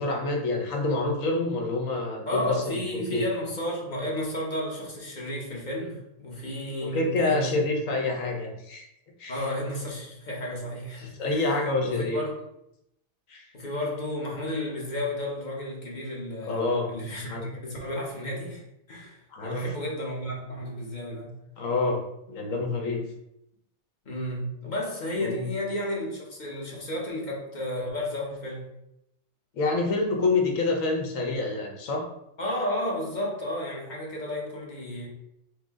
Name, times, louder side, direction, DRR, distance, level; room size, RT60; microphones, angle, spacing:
voice 1, 0.0-2.8 3.1-3.2 6.9-8.9 9.2-9.4 11.0-12.2 13.3-13.4 16.5-16.9 17.3-17.5 19.3-19.6 21.6-22.0 22.3-23.0 25.2-25.5 29.5-32.0, left 3 dB, 75° left, 1 dB, 1.1 m, -27 dB
voice 2, 2.3-7.6 9.3-12.4 13.5-18.6 18.9-21.3 24.0-28.7 32.4-35.1, left 1 dB, 35° left, -3 dB, 1.0 m, -32 dB
4.7 x 2.2 x 3.5 m, 0.81 s
omnidirectional pair, 1.4 m